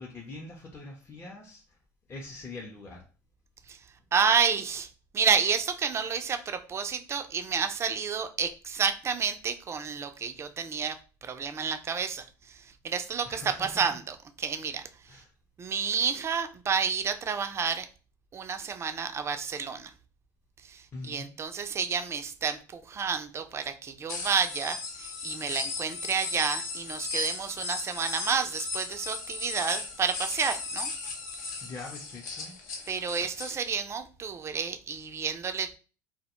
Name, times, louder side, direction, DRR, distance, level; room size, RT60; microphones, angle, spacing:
voice 1, 0.0-1.6 2.1-3.1 13.3-13.9 15.1-15.3 20.9-21.4 31.6-32.6, left 3 dB, 25° left, -1 dB, 0.5 m, -43 dB
voice 2, 4.1-4.9 5.1-11.0 11.2-14.8 15.6-17.9 18.3-19.9 20.7-30.9 32.9-35.8, right 6 dB, 30° right, 8 dB, 0.4 m, -30 dB
sound 1, 24.1-33.5, left 4 dB, 75° left, 0.7 m, -36 dB
2.1 x 2.1 x 2.9 m, 0.35 s
hypercardioid pair, 70°, 10 cm